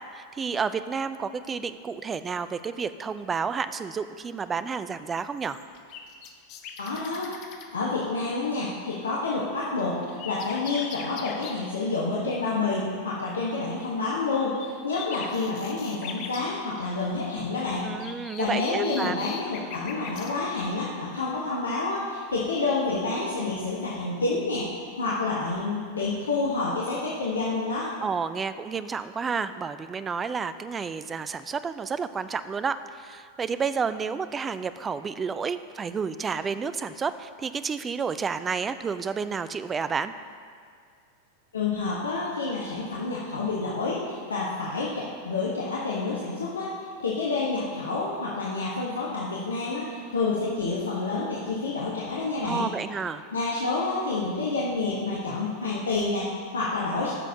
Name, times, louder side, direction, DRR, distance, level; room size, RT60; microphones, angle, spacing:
voice 1, 0.1-5.6 17.8-19.2 28.0-40.1 52.4-53.2, right 5 dB, 20° right, 12 dB, 0.3 m, -30 dB
sound 1, 5.4-7.7 9.8-11.6 14.5-14.7 14.9-16.5 18.0-20.3 23.7-23.9, left 7 dB, 40° left, 0.7 m, -41 dB
voice 2, 6.8-17.9 18.4-27.9 41.5-52.7 53.3-57.1, left 3 dB, 70° left, -6 dB, 1.1 m, -29 dB
14.0 x 6.2 x 2.7 m, 2.2 s
figure-of-eight pair, 90°, 0 cm